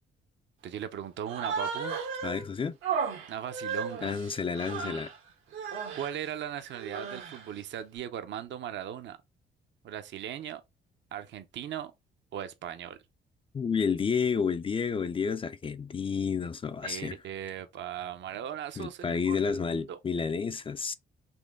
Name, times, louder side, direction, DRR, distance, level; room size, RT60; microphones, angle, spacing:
voice 1, 0.6-2.0 3.3-4.2 5.9-9.2 9.8-10.6 11.1-11.9 12.3-13.0 16.8-20.0, right 10 dB, 65° right, 0.7 m, -38 dB
Human voice, 1.3-2.4 2.8-5.2 5.5-6.1 6.7-7.5, right 6 dB, 85° right, 1.3 m, -35 dB
voice 2, 2.2-2.8 4.0-5.1 13.5-17.2 18.8-20.9, left 6 dB, 25° left, 0.3 m, -30 dB
4.4 x 3.0 x 3.4 m
cardioid pair, 90°, 20 cm